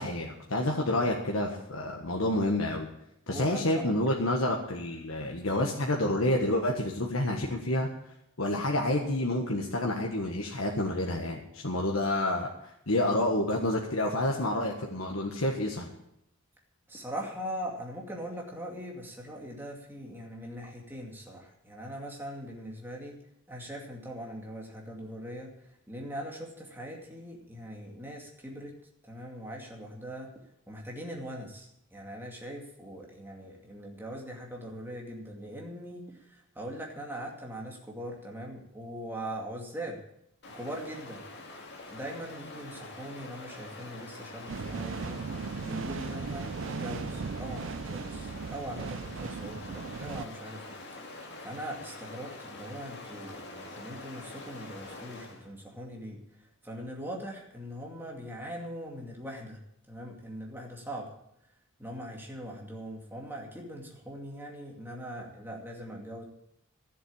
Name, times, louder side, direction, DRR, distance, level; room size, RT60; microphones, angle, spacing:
voice 1, 0.0-2.9 3.3-7.9 8.4-12.5 12.9-15.9, left 1 dB, 75° left, 0 dB, 1.5 m, -29 dB
voice 2, 3.3-4.0 16.9-23.2 23.5-28.7 29.0-30.3 30.7-40.0 40.5-41.2 41.9-45.2 45.6-50.8 51.0-59.6 59.9-61.1 61.8-66.2, equal, 10° right, -1 dB, 2.4 m, -41 dB
Stream, 40.4-55.5, left 2 dB, 55° left, 2.4 m, -45 dB
sound 1, 44.5-50.3, right 5 dB, 65° right, 0.5 m, -37 dB
12.5 x 7.7 x 8.8 m, 0.80 s
head